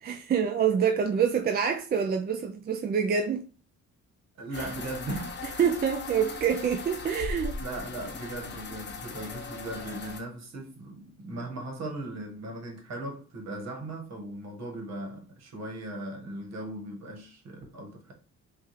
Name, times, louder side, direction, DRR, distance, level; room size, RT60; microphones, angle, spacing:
voice 1, 0.0-3.5 5.6-7.5, right 7 dB, 35° right, 0.4 m, -26 dB
voice 2, 4.4-5.3 7.6-18.1, right 2 dB, 60° right, 1.4 m, -38 dB
sound 1, 4.5-10.2, left 3 dB, 35° left, 0.9 m, -38 dB
5.2 x 2.5 x 3.1 m
cardioid pair, 90°, 30 cm